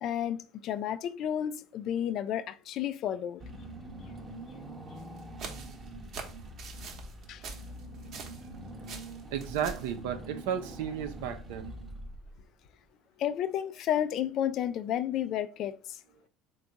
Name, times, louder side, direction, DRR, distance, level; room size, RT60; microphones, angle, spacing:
voice 1, 0.0-3.4 7.3-7.4 13.2-16.0, left 10 dB, 55° left, 0.3 m, -32 dB
Car / Engine, 3.4-12.6, right 1 dB, 25° right, 0.8 m, -44 dB
sound 1, 5.0-8.6 8.8-9.9, right 5 dB, 55° right, 0.9 m, -44 dB
voice 2, 9.3-11.7, right 8 dB, 80° right, 0.6 m, -33 dB
3.4 x 2.3 x 4.0 m
supercardioid pair, 90°, 0 cm